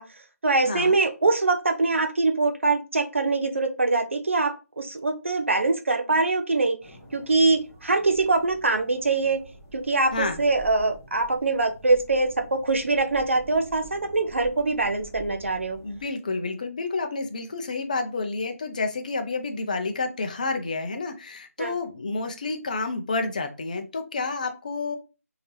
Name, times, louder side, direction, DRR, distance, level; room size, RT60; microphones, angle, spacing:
voice 1, 0.0-9.4 9.7-15.8 21.6-21.8, right 3 dB, 55° right, 5 dB, 0.5 m, -23 dB
sound 1, 6.8-16.1, right 2 dB, 5° right, 0.8 m, -48 dB
voice 2, 15.8-25.0, left 3 dB, 30° left, 6 dB, 0.5 m, -29 dB
4.4 x 2.9 x 2.7 m, 0.31 s
figure-of-eight pair, 155°, 8 cm